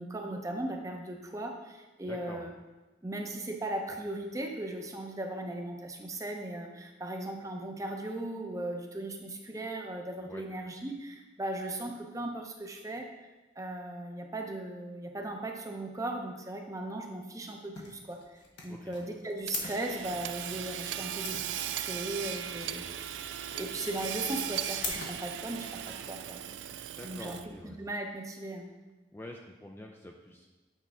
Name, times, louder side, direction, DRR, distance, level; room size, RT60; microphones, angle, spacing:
voice 1, 0.0-2.5 3.0-13.1 13.6-23.0 23.5-26.4 27.0-27.4 27.6-28.7, right 1 dB, 20° right, 3 dB, 0.7 m, -37 dB
voice 2, 2.1-2.4 10.2-10.4 18.7-18.9 22.6-23.0 27.0-27.8 29.1-30.5, left 1 dB, 15° left, 1 dB, 0.4 m, -47 dB
sound 1, 17.7-25.9, left 3 dB, 85° left, 1.2 m, -43 dB
Hammer / Sawing, 19.5-27.6, right 10 dB, 80° right, 0.3 m, -38 dB
8.3 x 5.4 x 3.6 m, 1.1 s
head